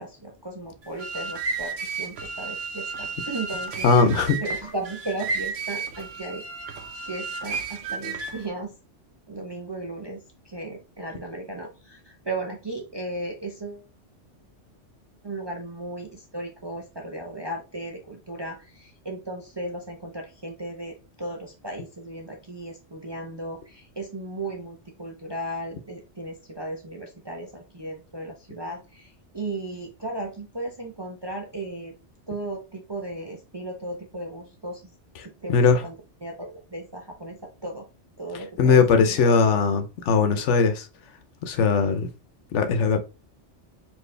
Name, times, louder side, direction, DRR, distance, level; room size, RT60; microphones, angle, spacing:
voice 1, 0.0-8.8 9.3-13.9 15.2-32.0 32.3-34.8 35.2-36.0 36.2-37.9 38.2-39.3, right 2 dB, 30° right, 0.5 m, -36 dB
sound 1, 0.8-8.5, right 4 dB, 85° right, 1.0 m, -33 dB
voice 2, 3.8-4.4 35.5-35.8 38.6-40.9 41.4-42.1 42.5-43.0, left 5 dB, 75° left, 1.0 m, -19 dB
4.5 x 2.6 x 3.3 m
omnidirectional pair, 1.2 m